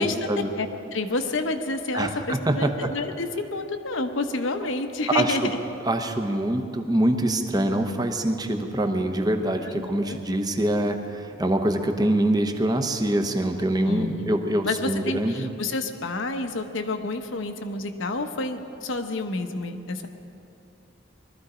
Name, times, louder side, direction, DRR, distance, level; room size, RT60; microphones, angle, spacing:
voice 1, 0.0-0.5 1.9-2.9 5.1-5.5 5.8-15.5, right 1 dB, 20° right, 6 dB, 0.9 m, -24 dB
voice 2, 0.6-5.6 9.6-10.2 13.9-20.1, left 3 dB, 70° left, 6 dB, 1.0 m, -29 dB
21.0 x 13.5 x 5.0 m, 2.8 s
head